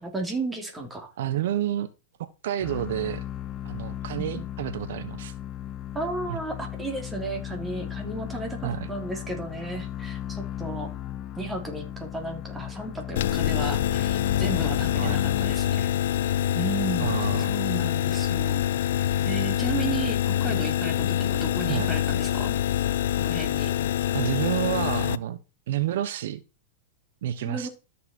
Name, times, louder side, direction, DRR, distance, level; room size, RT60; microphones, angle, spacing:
voice 1, 0.0-1.1 4.2-4.5 5.9-10.9 11.4-15.9 16.5-17.2 17.5-22.6 23.2-23.7 27.4-27.7, right 3 dB, 10° right, 3 dB, 3.1 m, -34 dB
voice 2, 1.2-1.9 2.4-3.2 3.6-5.3 6.3-6.4 8.6-8.9 15.0-15.2 17.0-17.6 21.7-22.0 24.1-25.4 25.7-26.4 27.2-27.7, right 11 dB, 70° right, 13 dB, 0.9 m, -29 dB
sound 1, 2.6-16.0, left 11 dB, 35° left, 0.9 m, -36 dB
sound 2, 13.2-25.2, left 11 dB, 70° left, 0.5 m, -25 dB
13.0 x 6.8 x 4.4 m, 0.31 s
hypercardioid pair, 130°, 0 cm